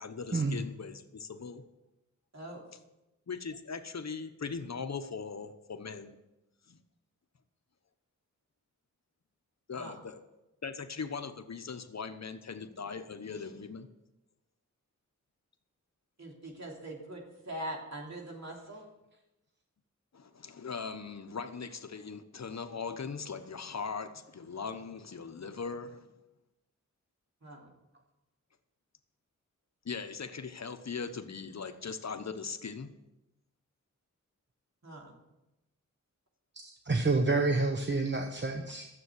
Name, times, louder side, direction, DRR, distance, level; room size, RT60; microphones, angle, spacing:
voice 1, 0.0-1.6 3.3-6.2 6.7-6.8 9.7-10.2 10.6-13.9 20.1-26.1 29.8-32.9, left 5 dB, 60° left, 9 dB, 1.0 m, -40 dB
voice 2, 2.3-2.6 9.7-9.9 16.2-18.9 27.4-27.7 34.8-35.1, right 1 dB, 60° right, -1 dB, 3.2 m, -42 dB
voice 3, 36.5-38.9, right 3 dB, 35° right, 4 dB, 1.0 m, -29 dB
12.5 x 7.7 x 8.2 m, 0.97 s
wide cardioid pair, 80°, 30 cm